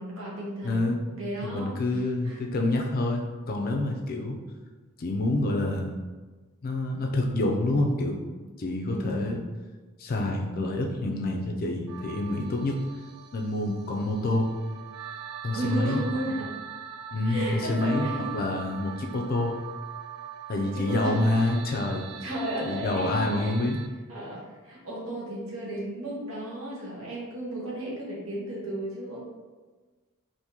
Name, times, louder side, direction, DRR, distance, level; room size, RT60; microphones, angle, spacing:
voice 1, 0.0-0.8 1.2-1.7 2.2-2.4 8.9-9.4 15.5-16.5 17.2-18.3 20.6-21.9 22.2-23.6 24.1-29.2, right 1 dB, 70° right, -5 dB, 1.0 m, -34 dB
voice 2, 0.6-1.0 1.4-4.4 5.0-6.0 6.6-8.2 8.6-9.4 10.0-12.8 13.3-14.5 15.4-16.0 17.1-18.1 18.3-19.6 20.5-22.1 22.6-23.8, left 2 dB, 45° left, 1 dB, 0.4 m, -27 dB
sound 1, 11.9-23.9, right 9 dB, 85° right, 0.3 m, -42 dB
2.8 x 2.6 x 3.6 m, 1.3 s
head